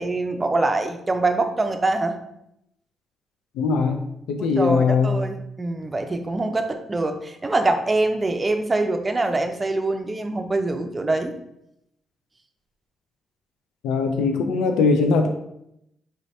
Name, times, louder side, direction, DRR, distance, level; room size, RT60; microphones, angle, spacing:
voice 1, 0.0-2.2 4.4-11.3, right 2 dB, 25° right, 6 dB, 0.5 m, -24 dB
voice 2, 3.6-5.1 13.8-15.3, left 4 dB, 90° left, 5 dB, 0.3 m, -21 dB
4.2 x 2.6 x 3.2 m, 0.79 s
cardioid pair, 80°, 0 cm